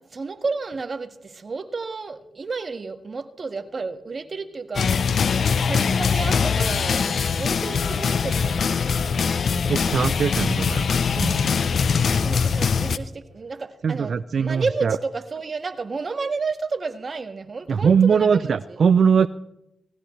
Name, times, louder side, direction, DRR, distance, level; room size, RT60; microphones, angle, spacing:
voice 1, 0.0-9.1 12.2-18.8, right 4 dB, 50° right, 7 dB, 1.6 m, -31 dB
sound 1, 4.7-13.0, left 6 dB, 70° left, 0.6 m, -22 dB
sound 2, 9.2-13.5, right 2 dB, 30° right, 5.5 m, -40 dB
voice 2, 9.7-10.9 11.2-11.4 13.8-15.0 17.7-19.3, right 6 dB, 65° right, 15 dB, 0.4 m, -20 dB
19.0 x 14.5 x 3.2 m, 0.81 s
supercardioid pair, 50°, 0 cm